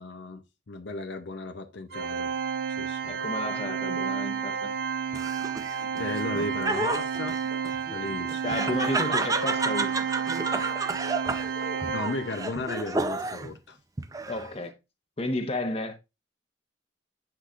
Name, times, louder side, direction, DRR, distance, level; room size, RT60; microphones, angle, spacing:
voice 1, 0.0-2.3 2.8-3.2 6.0-7.4 7.9-8.4 11.9-13.8, left 2 dB, 75° left, 0.7 m, -35 dB
Organ, 1.9-12.6, right 6 dB, 60° right, 0.6 m, -31 dB
voice 2, 3.0-4.7 8.4-10.0 14.3-14.7 15.2-16.0, left 2 dB, 35° left, 1.1 m, -32 dB
Laughter, 5.1-13.5 14.0-14.6, right 3 dB, 20° right, 0.5 m, -31 dB
8.2 x 5.9 x 2.5 m
head